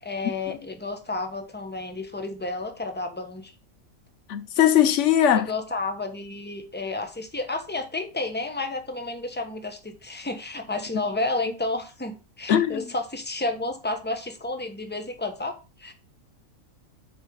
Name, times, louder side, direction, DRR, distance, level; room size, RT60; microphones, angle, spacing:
voice 1, 0.0-3.5 5.3-15.9, left 2 dB, 10° left, 0.9 m, -31 dB
voice 2, 4.3-5.5 12.5-12.8, left 10 dB, 65° left, 0.9 m, -20 dB
7.4 x 4.9 x 4.7 m
omnidirectional pair, 1.5 m